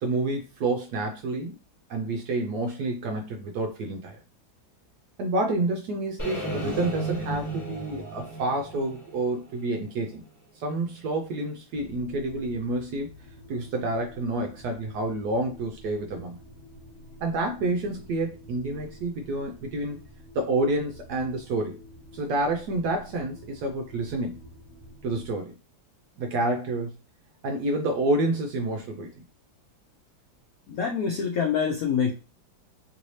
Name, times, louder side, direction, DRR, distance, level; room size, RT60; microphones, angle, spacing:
voice 1, 0.0-1.5 1.9-4.2 5.2-10.2 10.6-13.1 13.5-16.4 17.2-20.0 20.3-21.8 22.1-24.4 25.0-25.6 26.2-26.9 27.4-29.2, right 2 dB, 70° right, 3 dB, 1.0 m, -28 dB
sound 1, 6.2-10.2, right 2 dB, 15° left, 0.7 m, -34 dB
sound 2, 11.7-25.3, equal, 55° left, 1.3 m, -49 dB
voice 2, 30.7-32.1, left 6 dB, 75° left, 1 dB, 0.8 m, -25 dB
3.2 x 2.7 x 3.1 m, 0.31 s
omnidirectional pair, 2.1 m